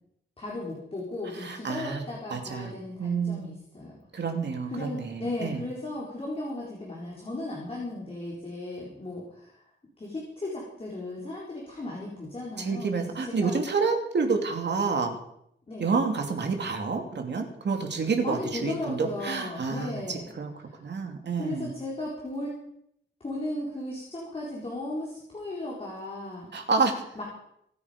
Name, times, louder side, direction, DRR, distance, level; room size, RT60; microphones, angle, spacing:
voice 1, 0.4-4.0 4.7-9.6 10.0-13.6 15.7-15.9 18.2-20.3 20.6-20.8 21.4-22.6 23.2-26.5 27.1-27.2, left 2 dB, 30° left, -4 dB, 4.2 m, -36 dB
voice 2, 1.4-2.0 2.3-2.7 3.0-3.5 4.1-5.6 12.6-15.2 15.8-20.0 20.4-20.5 20.8-21.7 26.5-27.0, right 4 dB, 60° right, 4 dB, 2.8 m, -28 dB
25.5 x 9.8 x 5.2 m, 0.74 s
wide cardioid pair, 150°, 20 cm